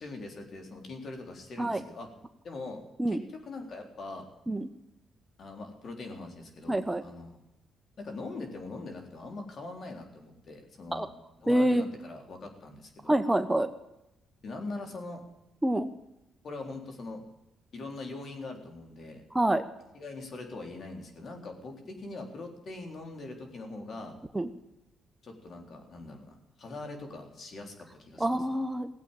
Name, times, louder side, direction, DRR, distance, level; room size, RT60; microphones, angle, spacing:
voice 1, 0.0-2.1 2.4-4.3 5.4-7.4 8.0-11.1 11.4-13.1 14.4-15.2 16.4-17.2 17.7-19.2 19.9-24.2 25.2-28.4, left 2 dB, 55° left, 4 dB, 3.7 m, -42 dB
voice 2, 6.7-7.0 10.9-11.1 11.5-11.8 13.1-13.7 15.6-15.9 19.3-19.6 24.3-24.5 28.2-28.9, right 1 dB, 10° right, 9 dB, 1.0 m, -26 dB
16.5 x 8.3 x 8.9 m, 0.89 s
cardioid pair, 90°, 0 cm